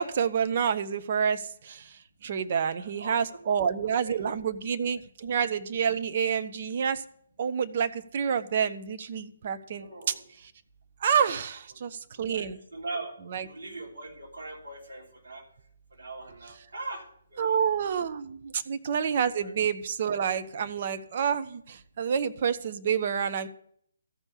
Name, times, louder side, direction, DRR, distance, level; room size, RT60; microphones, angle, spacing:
voice 1, 0.0-1.9 2.2-7.0 7.4-10.1 11.0-12.6 13.3-13.4 17.4-23.5, right 7 dB, 40° right, 9 dB, 0.7 m, -28 dB
voice 2, 2.6-3.5 3.8-4.3 9.8-10.2 12.2-15.4 15.9-18.1 19.4-19.5 21.9-22.0, right 2 dB, 60° right, -2 dB, 3.3 m, -42 dB
13.5 x 5.4 x 8.3 m, 0.65 s
figure-of-eight pair, 135°, 0 cm